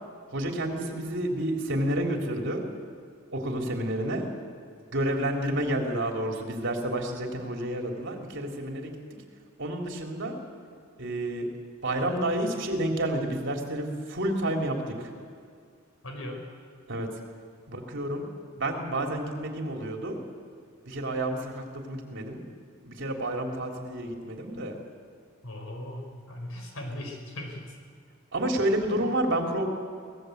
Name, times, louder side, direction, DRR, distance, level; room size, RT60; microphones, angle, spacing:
voice 1, 0.3-2.6 3.3-4.3 4.9-8.9 9.6-10.4 11.0-11.4 11.8-14.9 16.9-17.1 17.7-18.3 18.6-20.2 20.8-22.4 22.8-24.7 28.3-29.6, right 1 dB, 60° right, 2 dB, 3.5 m, -29 dB
voice 2, 16.0-16.4 25.4-27.7, left 1 dB, 85° left, 3 dB, 4.8 m, -38 dB
24.0 x 18.5 x 8.1 m, 2.2 s
head